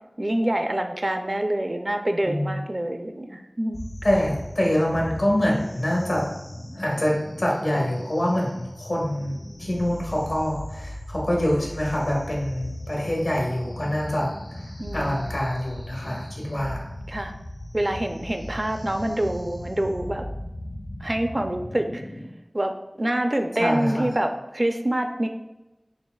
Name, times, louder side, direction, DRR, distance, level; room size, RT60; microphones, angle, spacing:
voice 1, 0.2-3.9 14.8-15.3 17.1-17.3 17.7-20.2 21.0-22.1 22.5-22.7 23.0-25.3, right 1 dB, 45° right, 5 dB, 0.4 m, -26 dB
voice 2, 2.2-2.6 4.0-6.2 6.7-14.3 14.9-16.8 23.6-24.0, left 1 dB, 80° left, -3 dB, 1.3 m, -25 dB
sound 1, 3.7-22.3, left 1 dB, 65° left, 0.6 m, -37 dB
6.7 x 2.5 x 2.3 m, 0.96 s
wide cardioid pair, 45°, 0 cm